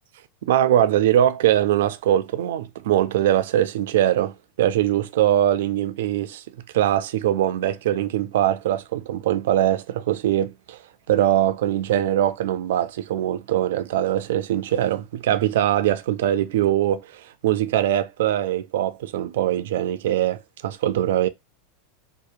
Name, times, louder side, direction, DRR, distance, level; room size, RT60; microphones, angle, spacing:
voice 1, 0.4-6.4 6.7-10.8 11.1-21.3, right 12 dB, 75° right, 0.3 m, -22 dB
2.8 x 2.0 x 2.5 m
hypercardioid pair, 120°, 0 cm